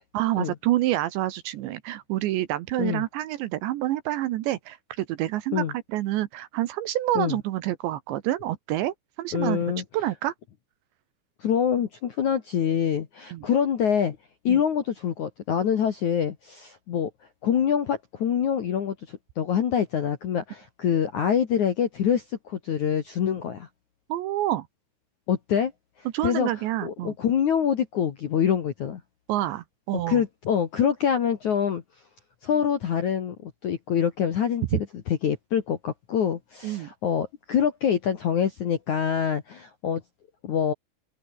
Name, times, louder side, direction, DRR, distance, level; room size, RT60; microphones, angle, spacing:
voice 1, 0.1-5.6 5.9-9.6 9.9-10.3 13.3-13.5 14.5-14.6 24.1-24.7 26.1-27.1 29.3-30.2 34.7-34.8 36.6-36.9, right 14 dB, 75° right, 2.9 m, -27 dB
voice 2, 9.3-9.8 11.4-14.2 14.4-17.1 17.4-23.7 25.3-25.7 26.0-26.5 26.8-29.0 30.1-31.8 32.4-34.9 35.2-40.0 40.4-40.7, left 8 dB, 60° left, 2.0 m, -25 dB
omnidirectional pair, 5.9 m